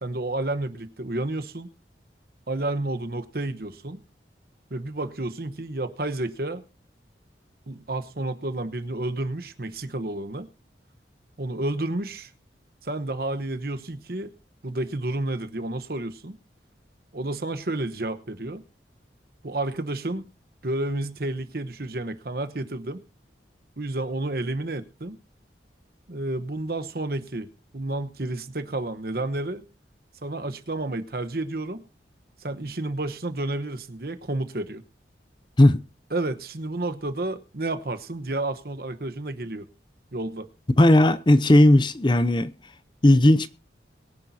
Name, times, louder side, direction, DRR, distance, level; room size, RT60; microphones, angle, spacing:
voice 1, 0.0-1.7 2.5-4.0 4.7-6.6 7.7-10.5 11.4-12.3 12.8-14.3 14.6-16.4 17.1-18.6 19.4-20.3 20.6-23.0 23.8-25.2 26.1-27.5 27.7-29.6 30.2-31.8 32.4-34.8 36.1-39.7 40.1-40.5, right 2 dB, 55° right, 1.1 m, -30 dB
voice 2, 40.8-42.5 43.0-43.5, left 1 dB, 25° left, 0.6 m, -16 dB
22.5 x 10.5 x 2.8 m
head